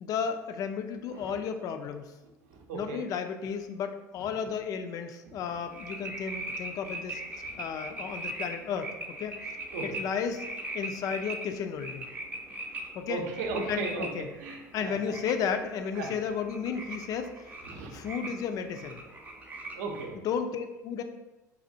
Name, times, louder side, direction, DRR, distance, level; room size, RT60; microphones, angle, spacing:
voice 1, 0.0-2.1 2.7-7.2 7.6-9.4 9.8-10.4 10.7-12.1 12.9-13.2 13.7-14.3 14.7-17.5 17.9-19.0 20.1-21.0, left 7 dB, 40° left, 7 dB, 0.3 m, -33 dB
voice 2, 2.7-3.0 7.5-7.6 9.7-10.0 13.1-14.1 14.4-14.9 16.0-16.1 17.7-17.9 19.8-20.1, right 3 dB, 60° right, 2 dB, 0.6 m, -35 dB
sound 1, 5.5-20.0, right 2 dB, 15° right, 0.5 m, -41 dB
4.2 x 2.4 x 2.6 m, 1.0 s
figure-of-eight pair, 70°, 10 cm